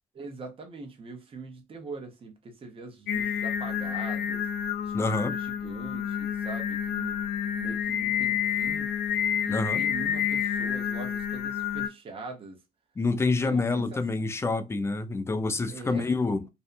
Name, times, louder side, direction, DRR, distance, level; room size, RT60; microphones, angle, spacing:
voice 1, 0.1-4.5 4.8-7.2 7.5-9.0 9.4-12.6 13.4-14.3 15.7-16.5, right 4 dB, 35° right, 0.9 m, -42 dB
Singing, 3.1-11.9, left 9 dB, 75° left, 0.5 m, -29 dB
voice 2, 4.9-5.3 9.5-9.8 13.0-16.4, left 3 dB, 15° left, 0.4 m, -27 dB
2.6 x 2.2 x 2.5 m
cardioid pair, 110°, 17 cm